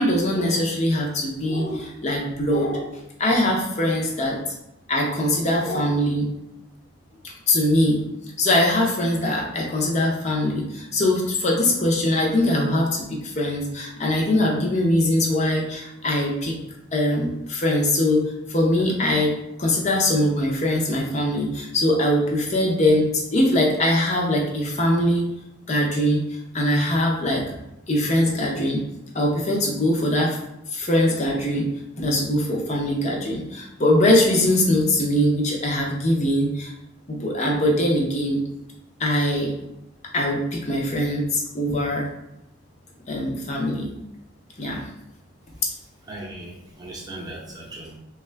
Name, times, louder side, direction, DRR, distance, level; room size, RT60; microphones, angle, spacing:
voice 1, 0.0-2.9 3.2-4.4 4.9-6.3 7.5-8.0 8.4-16.6 16.9-19.3 19.6-25.3 25.7-27.5 27.9-28.8 29.1-30.4 30.7-31.6 32.0-36.7 37.1-38.4 39.0-39.5 40.1-42.1 43.1-43.9 44.6-44.8 45.6-45.7, left 1 dB, 35° left, -1 dB, 0.7 m, -22 dB
voice 2, 46.1-48.0, right 1 dB, 20° right, -3 dB, 0.7 m, -38 dB
3.5 x 2.3 x 3.3 m, 0.87 s
head